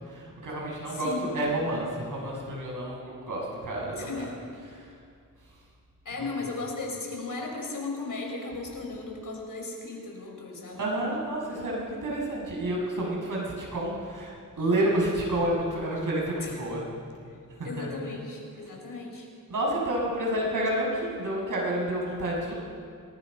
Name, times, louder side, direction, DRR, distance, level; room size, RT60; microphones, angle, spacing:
voice 1, 0.1-1.1 1.3-4.1 10.7-16.8 17.6-17.9 19.5-22.5, right 1 dB, 70° right, -3 dB, 6.9 m, -29 dB
voice 2, 0.9-1.4 4.0-4.5 6.0-10.8 16.4-16.7 17.6-19.3, left 3 dB, 75° left, 1 dB, 5.0 m, -36 dB
26.5 x 20.5 x 5.4 m, 2.3 s
wide cardioid pair, 85°, 33 cm